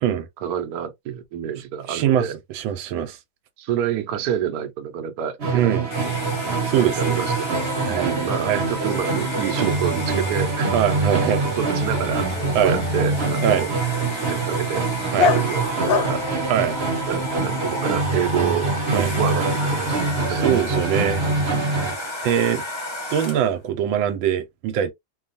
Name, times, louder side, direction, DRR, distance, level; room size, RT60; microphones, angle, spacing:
voice 1, 0.4-2.3 3.6-6.1 6.8-10.7 11.6-12.3 12.6-13.7 14.1-14.8 15.1-16.2 17.1-20.5, right 9 dB, 65° right, 1.0 m, -28 dB
voice 2, 1.9-3.2 5.5-5.9 6.6-7.2 7.8-8.1 8.4-8.6 9.6-9.7 10.7-11.4 12.5-12.8 13.4-13.7 15.1-15.3 16.5-16.8 18.9-19.1 20.3-21.9 22.2-22.6 23.1-24.9, right 9 dB, 85° right, 1.4 m, -23 dB
Musical instrument, 5.4-22.1, right 3 dB, 45° right, 0.9 m, -25 dB
Domestic sounds home sounds, 5.9-23.6, left 1 dB, 35° left, 0.4 m, -33 dB
Dog, 12.1-17.4, left 5 dB, 80° left, 1.3 m, -28 dB
3.3 x 2.3 x 2.5 m
omnidirectional pair, 2.1 m